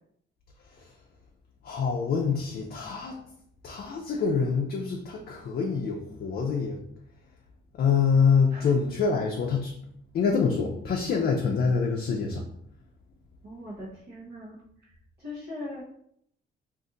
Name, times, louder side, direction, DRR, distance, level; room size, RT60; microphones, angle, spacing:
voice 1, 1.6-3.2 3.6-6.8 7.8-9.7 10.1-12.4, left 5 dB, 50° left, 1 dB, 0.5 m, -25 dB
voice 2, 13.4-14.9 15.2-15.8, left 1 dB, 55° right, -7 dB, 0.9 m, -40 dB
2.5 x 2.5 x 3.8 m, 0.71 s
cardioid pair, 90°, 20 cm